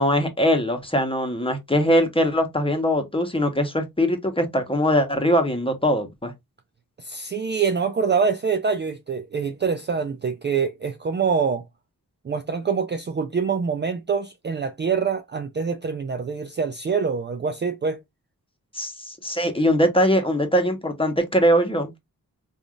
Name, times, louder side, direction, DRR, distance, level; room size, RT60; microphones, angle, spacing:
voice 1, 0.0-6.3 18.7-21.9, equal, 15° left, 1.0 m, -21 dB
voice 2, 7.0-11.6 12.2-18.0, right 5 dB, 30° right, 0.4 m, -25 dB
3.4 x 2.6 x 2.3 m
cardioid pair, 50°, 37 cm